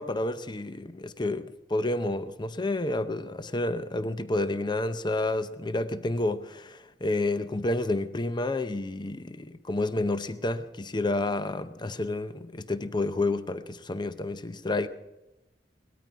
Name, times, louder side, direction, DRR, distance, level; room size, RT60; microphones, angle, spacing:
voice 1, 0.0-14.9, left 2 dB, 25° left, 0.6 m, -30 dB
19.0 x 13.0 x 4.7 m
head